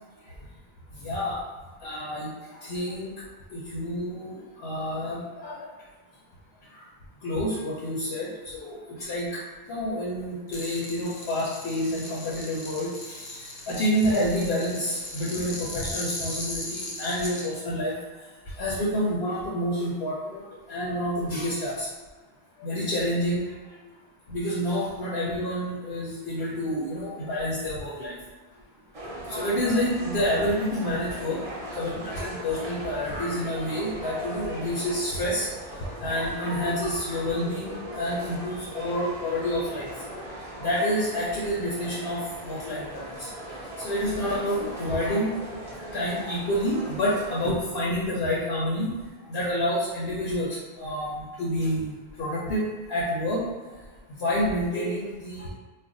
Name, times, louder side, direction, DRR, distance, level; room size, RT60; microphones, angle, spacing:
voice 1, 1.0-1.4 1.8-2.3 2.7-3.1 3.5-4.3 4.6-5.5 7.2-9.3 9.7-18.0 18.6-20.4 20.7-21.9 22.6-23.4 24.3-28.1 29.3-35.5 36.0-39.9 40.6-42.2 42.4-43.3 43.8-45.3 45.7-48.9 49.3-50.5 50.8-51.9 52.2-52.6 52.9-53.4 54.2-55.5, equal, 80° left, -5 dB, 0.9 m, -28 dB
sound 1, 10.5-17.5, left 2 dB, 45° left, 0.6 m, -38 dB
sound 2, 28.9-47.5, right 1 dB, 40° right, 0.6 m, -39 dB
2.5 x 2.2 x 3.7 m, 1.3 s
omnidirectional pair, 1.0 m